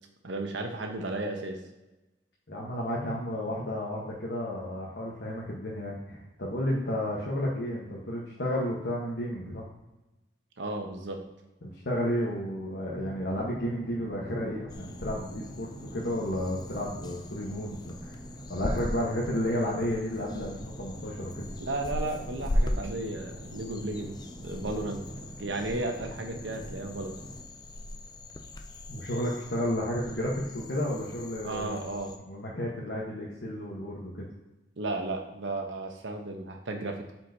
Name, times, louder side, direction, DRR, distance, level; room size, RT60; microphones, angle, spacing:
voice 1, 0.2-1.6 10.6-11.2 21.6-25.0 25.4-27.2 31.4-32.1 34.8-37.1, right 2 dB, 90° right, 4 dB, 0.9 m, -34 dB
voice 2, 2.5-9.6 11.6-18.1 18.5-21.5 28.9-31.9 32.2-34.2, equal, 65° left, -4 dB, 1.2 m, -32 dB
sound 1, 12.8-27.4, right 1 dB, 5° left, 1.9 m, -45 dB
sound 2, 14.7-32.2, left 1 dB, 25° left, 0.4 m, -38 dB
7.8 x 4.5 x 2.8 m, 1.0 s
head